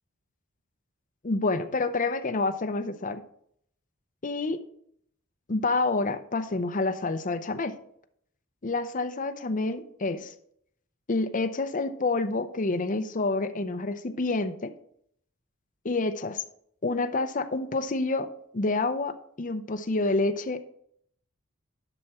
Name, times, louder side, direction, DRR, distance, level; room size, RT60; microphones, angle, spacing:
voice 1, 1.2-3.2 4.2-4.6 5.5-7.7 8.6-10.3 11.1-14.7 15.8-16.4 16.8-18.3 18.5-20.6, left 3 dB, 40° left, 8 dB, 0.7 m, -28 dB
11.0 x 5.9 x 4.3 m, 0.68 s
head